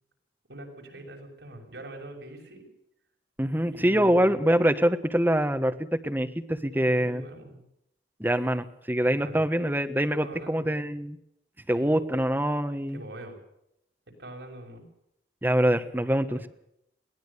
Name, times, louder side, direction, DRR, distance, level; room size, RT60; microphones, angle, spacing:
voice 1, 0.5-2.7 3.7-4.4 6.8-7.6 9.1-9.4 10.2-10.7 11.7-11.9 12.9-13.4 14.2-14.8 16.3-16.5, right 1 dB, 80° right, 2 dB, 6.4 m, -43 dB
voice 2, 3.4-7.2 8.2-11.2 11.7-13.0 15.4-16.5, equal, 10° right, 8 dB, 1.4 m, -25 dB
22.0 x 17.5 x 6.9 m, 0.77 s
head